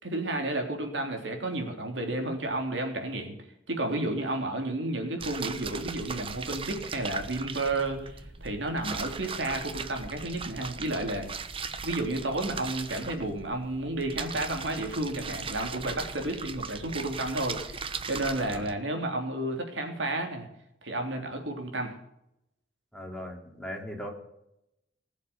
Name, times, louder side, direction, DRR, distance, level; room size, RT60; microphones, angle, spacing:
voice 1, 0.0-3.3 3.7-11.5 11.8-20.5 20.8-21.9, right 2 dB, 75° right, 3 dB, 3.4 m, -32 dB
sound 1, 5.2-18.7, right 5 dB, 30° right, 0.9 m, -38 dB
voice 2, 18.3-18.7 22.9-24.1, equal, 5° left, 0 dB, 3.0 m, -39 dB
19.5 x 7.3 x 8.2 m, 0.81 s
head